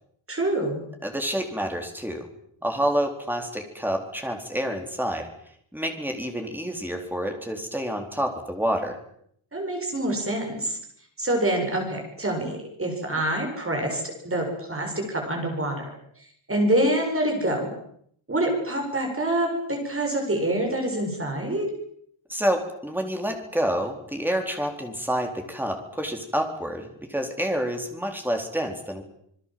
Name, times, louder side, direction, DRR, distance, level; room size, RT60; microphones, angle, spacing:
voice 1, 0.3-0.8 9.5-10.8 11.2-15.9 16.5-17.7 18.3-21.7, right 1 dB, 25° right, 2 dB, 7.1 m, -26 dB
voice 2, 1.0-2.2 2.6-5.3 5.7-9.0 22.3-29.0, equal, 5° right, 3 dB, 4.0 m, -28 dB
27.0 x 21.5 x 7.7 m, 0.68 s
wide cardioid pair, 170°, 49 cm